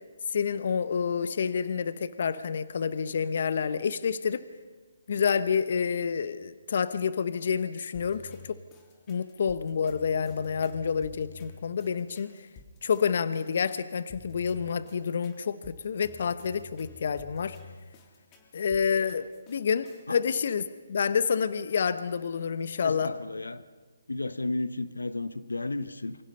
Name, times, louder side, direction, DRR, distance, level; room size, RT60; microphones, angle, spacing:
voice 1, 0.3-4.4 5.1-8.6 9.1-12.5 12.8-17.6 18.5-23.1, left 6 dB, 55° left, 14 dB, 1.0 m, -28 dB
sound 1, 7.9-20.2, left 4 dB, 25° left, 3.3 m, -51 dB
voice 2, 22.8-23.6 24.1-26.2, left 2 dB, 85° left, 13 dB, 1.1 m, -33 dB
27.5 x 25.0 x 5.6 m, 1.4 s
figure-of-eight pair, 140°, 0 cm